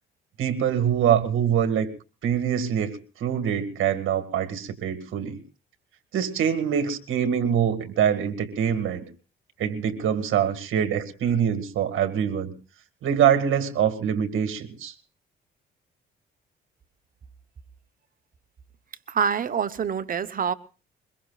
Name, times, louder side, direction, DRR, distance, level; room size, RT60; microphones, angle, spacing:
voice 1, 0.4-1.9 2.2-5.4 6.1-9.0 9.6-12.5 13.0-14.9, right 8 dB, 70° right, 2.2 m, -24 dB
voice 2, 19.1-20.5, right 7 dB, 40° right, 1.0 m, -26 dB
22.5 x 22.0 x 2.4 m
cardioid pair, 90°, 21 cm